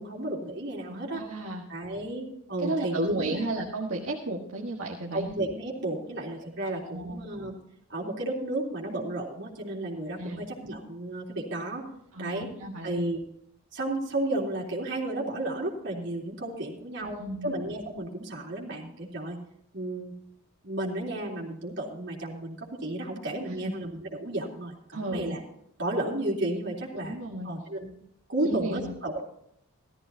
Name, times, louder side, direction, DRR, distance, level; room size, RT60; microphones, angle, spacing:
voice 1, 0.0-1.3 1.7-3.4 5.1-7.6 7.9-11.9 12.2-12.5 12.8-13.2 13.7-19.4 19.7-20.1 20.6-25.4 25.8-27.2 27.4-27.9 28.3-29.2, right 1 dB, 55° right, -3 dB, 3.4 m, -33 dB
voice 2, 0.9-1.6 2.6-5.3 6.6-7.2 10.2-10.4 12.1-13.0 17.0-17.6 23.5-23.7 24.9-25.3 26.9-27.5 28.4-28.9, right 2 dB, 70° right, -2 dB, 1.6 m, -33 dB
16.0 x 14.0 x 2.8 m, 0.75 s
head